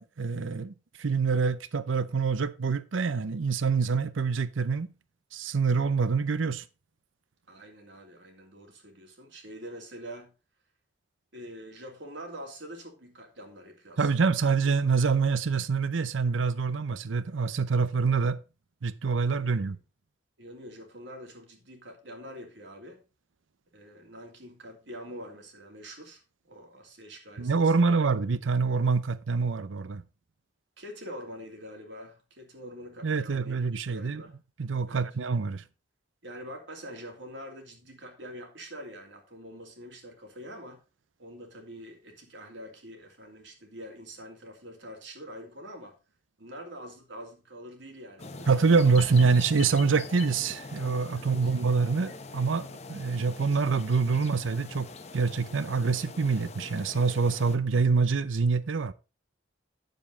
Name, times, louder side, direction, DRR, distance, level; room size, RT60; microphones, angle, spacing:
voice 1, 0.0-4.9 5.3-6.6 14.0-18.4 18.8-19.8 27.4-30.0 33.0-34.2 34.6-35.6 48.5-54.9 55.1-58.9, right 4 dB, 90° right, 0.6 m, -26 dB
voice 2, 7.5-10.3 11.3-14.1 19.4-19.6 20.4-23.0 23.7-26.2 26.5-28.0 30.8-34.3 34.9-35.0 36.2-40.8 41.2-46.0 46.4-48.8 51.2-51.5, equal, 70° right, 2.8 m, -45 dB
sound 1, 48.2-57.6, left 3 dB, 35° left, 0.8 m, -43 dB
9.2 x 7.3 x 3.8 m
head